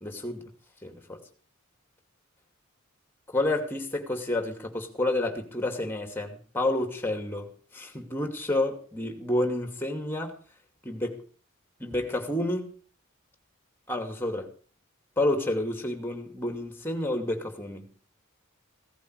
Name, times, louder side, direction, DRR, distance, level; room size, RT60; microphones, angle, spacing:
voice 1, 0.0-0.5 0.8-1.2 3.3-10.4 10.8-11.2 11.8-12.8 13.9-14.5 15.2-17.9, left 1 dB, 10° left, 2.6 m, -30 dB
16.5 x 14.0 x 4.8 m
head